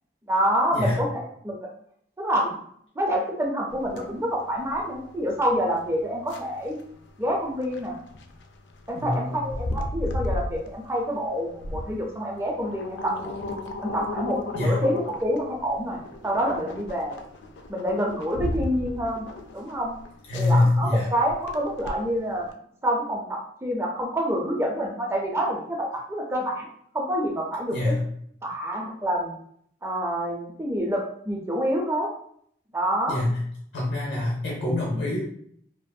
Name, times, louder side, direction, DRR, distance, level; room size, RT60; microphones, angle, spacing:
voice 1, 0.3-1.5 2.2-2.6 3.0-6.8 7.2-7.9 8.9-13.3 13.8-17.2 17.7-19.2 19.5-19.9 20.3-22.5 22.8-26.7 26.9-28.0 28.4-29.4 29.8-32.1 32.7-33.2, equal, 15° right, 0 dB, 0.4 m, -27 dB
sound 1, 3.7-22.5, left 2 dB, 75° left, 0.3 m, -36 dB
voice 2, 8.9-9.4 14.5-14.8 20.3-21.1 27.7-28.0 33.1-33.4 33.7-35.2, left 2 dB, 90° left, -5 dB, 0.7 m, -24 dB
2.6 x 2.4 x 2.2 m, 0.65 s
head